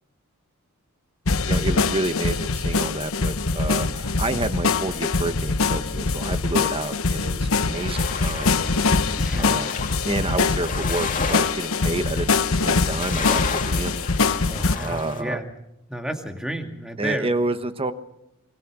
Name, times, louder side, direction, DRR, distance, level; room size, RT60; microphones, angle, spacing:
sound 1, 1.3-14.8, left 4 dB, 70° left, 1.1 m, -23 dB
voice 1, 1.5-8.5 9.4-9.7 10.0-12.4 12.6-14.0 14.8-15.4 17.0-17.9, right 2 dB, 25° right, 10 dB, 1.3 m, -29 dB
sound 2, 7.7-15.2, left 5 dB, 40° left, 2.4 m, -33 dB
voice 2, 9.2-9.6 14.5-15.5 15.9-17.3, equal, 5° right, 4 dB, 2.3 m, -31 dB
26.5 x 23.0 x 6.2 m, 0.86 s
head